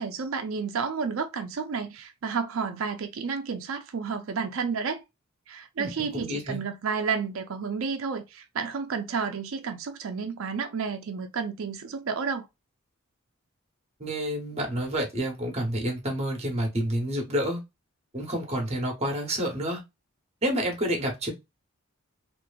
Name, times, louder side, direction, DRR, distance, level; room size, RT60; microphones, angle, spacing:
voice 1, 0.0-5.0 5.5-12.5, right 5 dB, 60° right, 0.4 m, -31 dB
voice 2, 5.8-6.6 14.0-17.6 18.1-19.8 20.4-21.3, equal, 30° right, 0.9 m, -29 dB
2.8 x 2.5 x 2.2 m
head